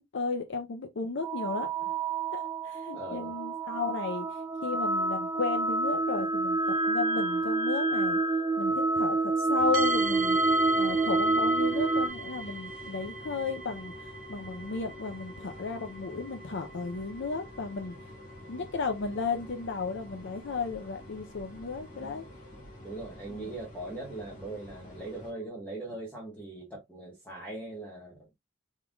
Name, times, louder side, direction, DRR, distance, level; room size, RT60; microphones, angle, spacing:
voice 1, 0.0-1.9 2.3-4.3 4.6-6.6 6.9-8.2 8.6-10.4 10.8-17.9 18.5-22.2 23.3-23.5, left 4 dB, 60° left, 0.6 m, -34 dB
sound 1, 1.2-12.1, right 2 dB, 15° right, 0.4 m, -28 dB
voice 2, 2.9-3.3 22.8-28.3, right 2 dB, 10° left, 1.3 m, -40 dB
sound 2, 9.6-25.3, equal, 35° left, 1.8 m, -49 dB
sound 3, 9.7-25.5, right 3 dB, 45° right, 1.0 m, -42 dB
4.6 x 3.7 x 2.3 m
head